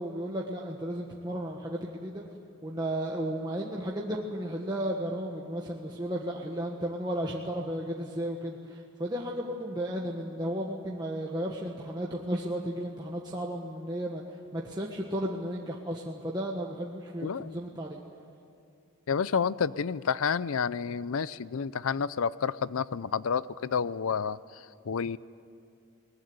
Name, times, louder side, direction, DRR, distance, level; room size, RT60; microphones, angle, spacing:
voice 1, 0.0-2.2 2.6-14.2 14.5-18.0, right 1 dB, 20° right, -1 dB, 1.4 m, -34 dB
voice 2, 17.2-17.6 19.1-25.2, left 6 dB, 80° left, 18 dB, 0.5 m, -30 dB
22.0 x 20.5 x 9.6 m, 2.5 s
head